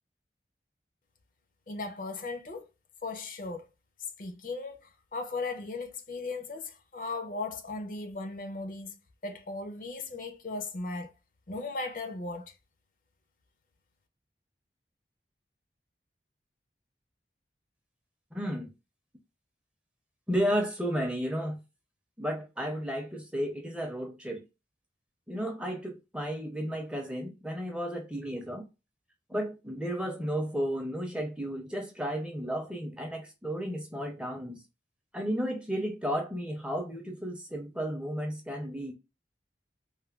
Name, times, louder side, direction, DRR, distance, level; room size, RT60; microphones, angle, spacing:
voice 1, 1.7-2.7 3.0-3.7 4.2-9.0 9.2-11.1 11.5-12.5, left 3 dB, 50° left, 0.5 m, -37 dB
voice 2, 18.3-18.7 20.3-21.6 22.2-24.4 25.3-28.7 29.3-34.6 35.1-38.9, equal, 5° right, 0.5 m, -33 dB
3.3 x 2.2 x 2.2 m
head